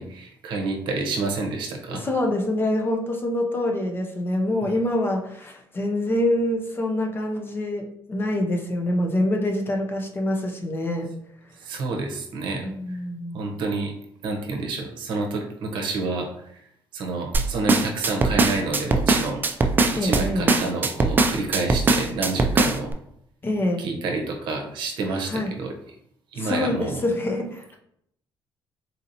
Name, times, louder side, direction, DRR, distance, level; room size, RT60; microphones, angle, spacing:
voice 1, 0.0-2.0 11.6-13.0 13.3-13.9 14.2-16.6 16.9-19.5 20.0-22.9 23.8-25.7 26.3-27.0, right 3 dB, 70° right, 2 dB, 0.8 m, -29 dB
voice 2, 1.9-11.1 12.6-13.5 20.0-20.6 23.4-23.8 25.3-25.5 26.4-27.8, left 1 dB, 25° left, 2 dB, 0.6 m, -25 dB
sound 1, 17.3-22.9, right 3 dB, 25° right, 0.4 m, -20 dB
4.1 x 2.8 x 2.6 m, 0.72 s
cardioid pair, 120°, 8 cm